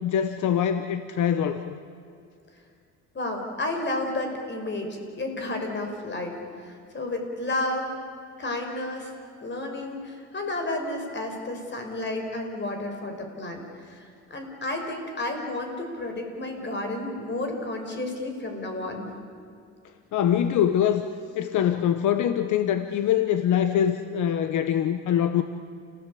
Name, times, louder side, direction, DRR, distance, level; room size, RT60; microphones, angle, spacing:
voice 1, 0.0-1.8 20.1-21.1 21.3-25.4, left 9 dB, 75° left, 9 dB, 1.1 m, -24 dB
voice 2, 3.1-8.0 8.4-9.1 9.4-19.1, left 2 dB, 35° left, 4 dB, 5.3 m, -32 dB
29.5 x 17.0 x 8.5 m, 2.4 s
cardioid pair, 90°, 30 cm